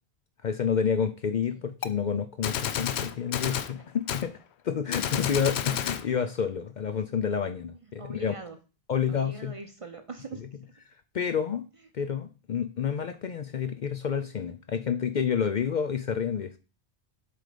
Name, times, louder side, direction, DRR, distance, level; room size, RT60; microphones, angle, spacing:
voice 1, 0.4-4.4 4.6-8.3 8.9-9.5 11.1-11.6 11.9-16.6, left 7 dB, 55° left, 10 dB, 0.6 m, -29 dB
Gunshot gunfire, 1.8-1.9 2.4-3.7 4.1-4.3 4.9-6.0, left 9 dB, 80° left, 0.9 m, -30 dB
voice 2, 5.1-5.5 7.6-8.6 9.1-10.7, right 4 dB, 40° right, 7 dB, 0.6 m, -42 dB
7.7 x 3.4 x 5.0 m, 0.33 s
omnidirectional pair, 1.1 m